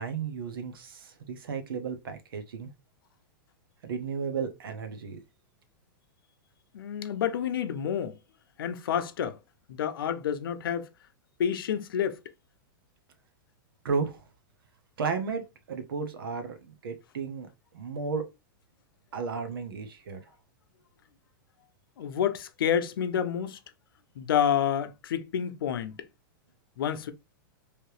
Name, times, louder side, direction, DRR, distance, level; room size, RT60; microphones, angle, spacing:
voice 1, 0.0-2.7 3.8-5.2 13.8-14.2 15.0-15.4 15.7-17.5 17.7-18.2 19.1-20.2, right 5 dB, 90° right, 0.9 m, -33 dB
voice 2, 6.7-8.2 8.6-9.4 9.7-10.9 11.4-12.2 22.0-23.6 24.2-26.0 26.8-27.1, left 9 dB, 85° left, 0.6 m, -29 dB
3.3 x 2.8 x 3.1 m
supercardioid pair, 145°, 12 cm